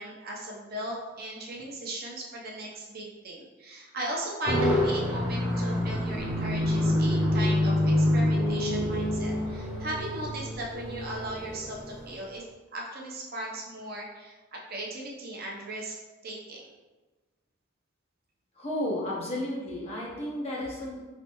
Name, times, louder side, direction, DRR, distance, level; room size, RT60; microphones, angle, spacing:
voice 1, 0.0-12.4 12.7-16.0 16.2-16.6, right 1 dB, 45° right, -3 dB, 0.7 m, -37 dB
sound 1, 4.4-12.2, left 1 dB, 10° right, 1.2 m, -27 dB
voice 2, 18.6-21.0, left 1 dB, 30° left, -5 dB, 0.9 m, -33 dB
4.3 x 3.2 x 2.9 m, 1.2 s
head